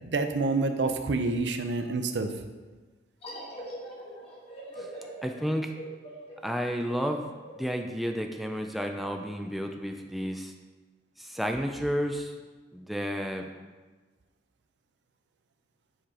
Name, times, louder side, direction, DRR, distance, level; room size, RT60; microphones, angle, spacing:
voice 1, 0.0-2.3, right 3 dB, 75° right, 7 dB, 0.6 m, -28 dB
sound 1, 3.2-8.5, right 1 dB, 35° left, 1.4 m, -43 dB
voice 2, 5.2-5.7 6.4-7.3 7.6-10.5 11.2-12.3 12.7-13.5, equal, ahead, 3 dB, 0.4 m, -31 dB
7.2 x 4.9 x 3.8 m, 1.3 s
head